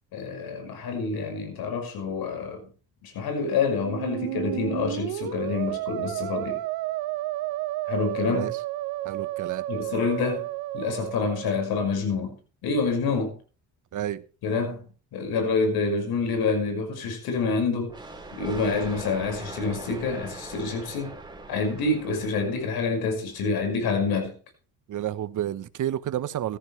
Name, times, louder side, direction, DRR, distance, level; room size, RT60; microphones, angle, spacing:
voice 1, 0.1-2.6 3.0-6.6 7.9-8.5 9.7-10.5 10.7-12.4 12.6-13.4 14.4-14.8 15.1-17.9 18.3-21.1 21.5-24.3, left 4 dB, 75° left, 5.8 m, -27 dB
Musical instrument, 3.7-11.7, right 16 dB, 85° right, 1.2 m, -32 dB
voice 2, 9.0-9.6 13.9-14.2 24.9-26.6, right 11 dB, 55° right, 1.1 m, -30 dB
Thunder, 17.9-23.2, right 2 dB, 10° right, 4.6 m, -41 dB
16.0 x 14.0 x 3.3 m
supercardioid pair, 80°, 37 cm